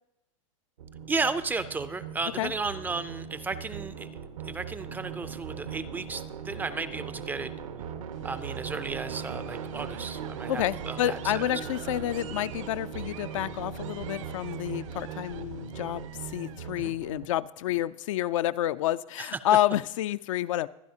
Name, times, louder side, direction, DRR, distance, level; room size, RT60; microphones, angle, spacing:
sound 1, 0.8-17.3, right 7 dB, 85° right, 1.3 m, -39 dB
voice 1, 1.1-4.1 4.4-7.5 8.2-11.2 16.7-16.9 19.2-19.3, right 4 dB, 10° right, 13 dB, 0.4 m, -34 dB
sound 2, 8.1-16.7, right 11 dB, 65° right, 1.2 m, -49 dB
voice 2, 10.5-20.7, left 13 dB, 70° left, 14 dB, 0.5 m, -29 dB
23.5 x 9.6 x 2.8 m, 0.90 s
hypercardioid pair, 130°, 17 cm